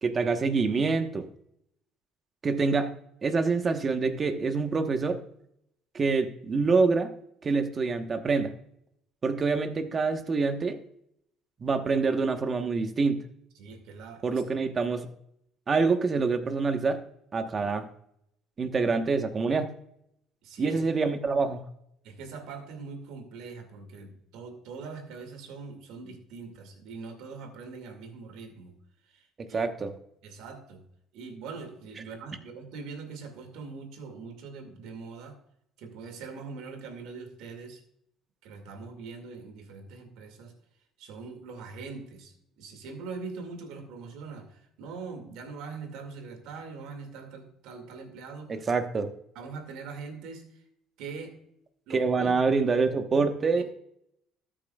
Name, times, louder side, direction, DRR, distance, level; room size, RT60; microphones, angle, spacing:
voice 1, 0.0-1.3 2.4-2.9 3.2-5.2 5.9-7.1 7.4-8.5 9.2-10.8 11.6-13.2 14.2-15.1 15.7-17.0 17.3-17.9 18.6-19.8 20.6-21.6 29.4-29.9 48.5-49.1 51.9-53.6, right 4 dB, 35° right, 8 dB, 1.1 m, -26 dB
voice 2, 13.6-14.4 20.4-20.8 22.0-28.7 29.1-29.6 30.2-30.8 31.1-35.4 35.8-37.8 38.4-40.5 41.0-48.6 49.3-50.6 51.0-51.3 51.9-52.5 53.6-53.7, right 4 dB, 80° right, 6 dB, 2.2 m, -42 dB
13.5 x 8.7 x 2.4 m, 0.73 s
cardioid pair, 100°, 0 cm